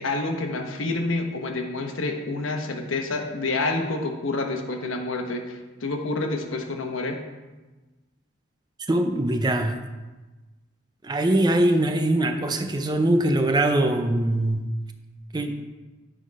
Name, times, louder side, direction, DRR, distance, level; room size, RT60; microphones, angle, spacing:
voice 1, 0.0-7.2, left 2 dB, 80° left, 4 dB, 1.0 m, -28 dB
voice 2, 8.9-9.8 11.0-14.6 15.3-15.6, right 1 dB, 20° right, 7 dB, 0.4 m, -22 dB
9.3 x 4.0 x 5.2 m, 1.2 s
head